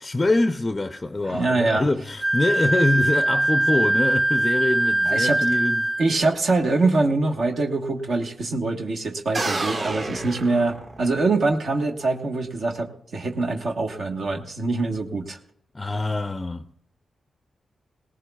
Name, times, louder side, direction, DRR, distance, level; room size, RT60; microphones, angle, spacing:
voice 1, 0.0-5.8 15.7-16.7, left 2 dB, 25° left, 0.5 m, -24 dB
voice 2, 1.2-1.9 5.0-5.4 6.0-15.4, right 3 dB, 65° right, 1.3 m, -24 dB
Wind instrument woodwind instrument, 2.2-6.1, right 1 dB, 25° right, 1.0 m, -22 dB
sound 1, 9.3-11.3, right 2 dB, 50° right, 1.7 m, -29 dB
18.5 x 18.5 x 2.4 m
wide cardioid pair, 105°, 0 cm